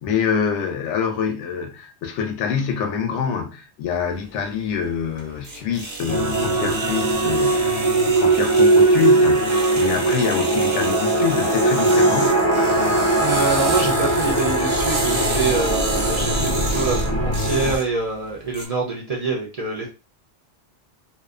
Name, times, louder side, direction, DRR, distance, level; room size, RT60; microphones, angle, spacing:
voice 1, 0.0-12.4, left 7 dB, 90° left, 0.9 m, -26 dB
sound 1, 4.0-18.7, right 3 dB, 85° right, 1.0 m, -32 dB
sound 2, 6.1-17.8, right 2 dB, 45° left, 0.3 m, -20 dB
voice 2, 13.2-19.9, right 3 dB, 50° right, 0.5 m, -25 dB
2.5 x 2.1 x 2.4 m
omnidirectional pair, 1.2 m